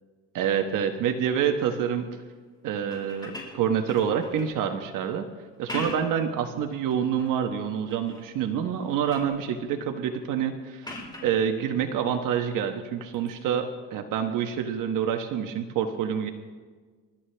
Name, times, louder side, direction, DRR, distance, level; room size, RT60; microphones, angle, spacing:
voice 1, 0.3-2.1 2.6-5.3 5.6-10.9 11.2-16.3, right 8 dB, 65° right, 5 dB, 1.2 m, -27 dB
sound 1, 2.8-4.6 5.5-6.2 6.7-7.4 7.9-8.3 8.7-9.4 10.8-11.4 13.1-13.3, left 2 dB, 10° left, 4.6 m, -41 dB
29.0 x 13.0 x 3.4 m, 1.5 s
cardioid pair, 120°, 35 cm